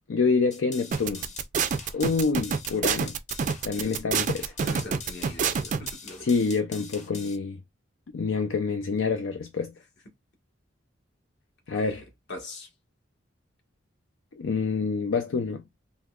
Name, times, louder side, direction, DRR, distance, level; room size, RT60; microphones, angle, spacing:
voice 1, 0.1-1.2 1.9-3.1 3.6-4.5 6.2-7.6 8.1-9.7 11.7-12.0 14.4-15.6, left 4 dB, 80° left, 0.5 m, -27 dB
sound 1, 0.5-7.4, left 4 dB, 40° left, 1.0 m, -43 dB
sound 2, 0.9-5.9, right 6 dB, 40° right, 0.4 m, -27 dB
voice 2, 4.6-6.3 11.8-12.7, left 2 dB, 60° left, 1.3 m, -42 dB
3.7 x 2.9 x 2.4 m
head